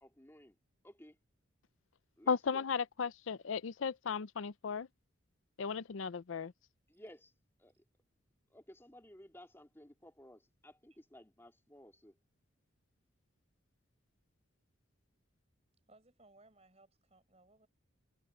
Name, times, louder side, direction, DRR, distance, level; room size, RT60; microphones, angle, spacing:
voice 1, 0.0-0.6 0.8-1.2 2.2-2.6 6.9-7.3 7.6-7.7 8.5-12.2, equal, 10° left, 2.6 m, -56 dB
voice 2, 2.3-4.9 5.6-6.5, left 5 dB, 75° left, 0.5 m, -35 dB
voice 3, 15.9-17.7, right 2 dB, 30° right, 5.0 m, -64 dB
head